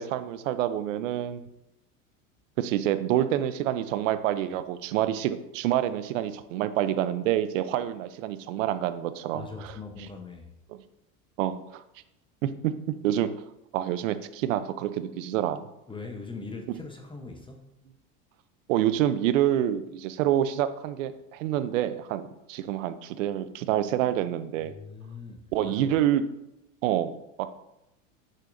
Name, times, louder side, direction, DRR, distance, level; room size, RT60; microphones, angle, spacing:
voice 1, 0.0-1.4 2.6-9.8 10.7-10.8 11.4-11.8 12.4-12.7 13.0-13.3 13.7-15.7 18.7-24.7 25.5-26.2 26.8-27.1 27.4-27.5, right 11 dB, 75° right, 12 dB, 0.6 m, -27 dB
voice 2, 9.3-10.5 15.9-17.7 24.6-26.0, left 4 dB, 15° left, 4 dB, 0.8 m, -41 dB
6.4 x 5.7 x 2.6 m, 0.88 s
hypercardioid pair, 100°, 39 cm